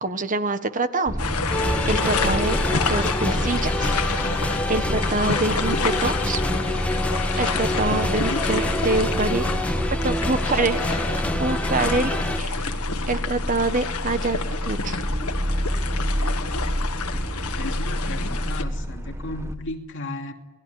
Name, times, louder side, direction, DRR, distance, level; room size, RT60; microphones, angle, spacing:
voice 1, 0.0-1.1 1.4-2.6 2.9-4.0 4.7-6.4 6.9-7.0 7.4-11.0 11.4-12.8 13.1-15.0, right 3 dB, 35° right, 10 dB, 1.5 m, -26 dB
sound 1, 1.1-19.6, equal, 10° right, 1.5 m, -29 dB
sound 2, 1.2-18.6, left 5 dB, 85° left, 1.6 m, -29 dB
sound 3, 1.5-12.4, left 1 dB, 5° left, 1.6 m, -27 dB
voice 2, 17.5-20.3, left 2 dB, 60° left, 4 dB, 2.7 m, -35 dB
29.0 x 20.0 x 9.8 m, 1.2 s
head